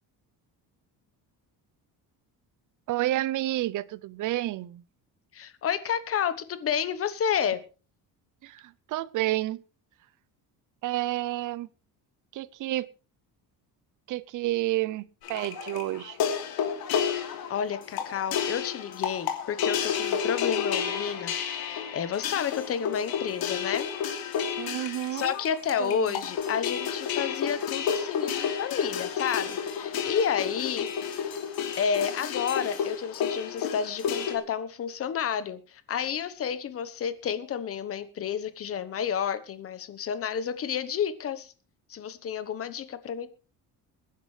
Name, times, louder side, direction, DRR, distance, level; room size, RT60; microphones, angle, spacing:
voice 1, 2.9-4.8 8.4-9.6 10.8-11.7 12.3-12.9 14.1-15.0 15.3-16.2 24.6-25.3 25.8-26.2, right 15 dB, 55° right, 0.6 m, -30 dB
voice 2, 5.3-7.6 17.5-21.3 21.6-23.9 25.1-30.9 31.8-41.5 41.9-43.3, left 8 dB, 35° left, 1.1 m, -30 dB
sound 1, 15.2-34.3, left 7 dB, 70° left, 2.8 m, -31 dB
22.5 x 10.5 x 3.3 m
cardioid pair, 165°, 37 cm